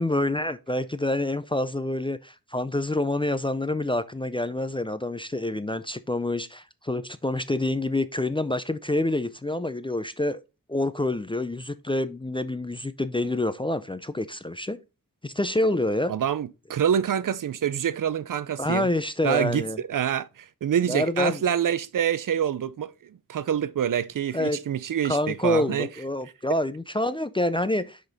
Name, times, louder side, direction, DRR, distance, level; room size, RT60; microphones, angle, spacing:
voice 1, 0.0-10.4 10.7-14.8 15.2-16.1 18.6-19.8 20.9-21.4 24.3-24.6 25.0-28.0, left 1 dB, 15° left, 0.3 m, -27 dB
voice 2, 16.1-18.9 19.2-22.9 23.3-25.9, right 9 dB, 60° right, 0.5 m, -26 dB
5.9 x 5.1 x 4.0 m
wide cardioid pair, 120°, 36 cm